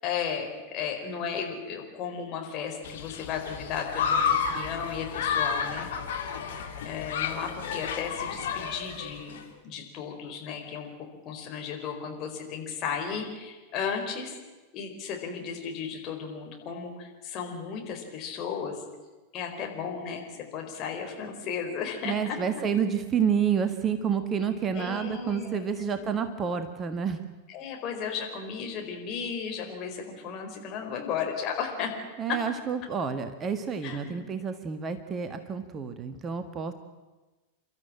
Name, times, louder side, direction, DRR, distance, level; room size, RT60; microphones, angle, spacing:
voice 1, 0.0-5.9 6.8-9.4 9.6-10.9 11.2-14.4 14.7-18.7 19.3-22.4 24.7-25.6 26.0-26.1 27.5-31.9 33.8-34.2, left 6 dB, 35° left, 2 dB, 4.8 m, -34 dB
Human group actions, 2.8-9.4, left 6 dB, 60° left, 2.3 m, -31 dB
voice 2, 22.0-27.2 32.2-36.7, right 7 dB, 25° right, 8 dB, 1.5 m, -29 dB
29.5 x 13.0 x 8.9 m, 1.2 s
figure-of-eight pair, 90°, 0 cm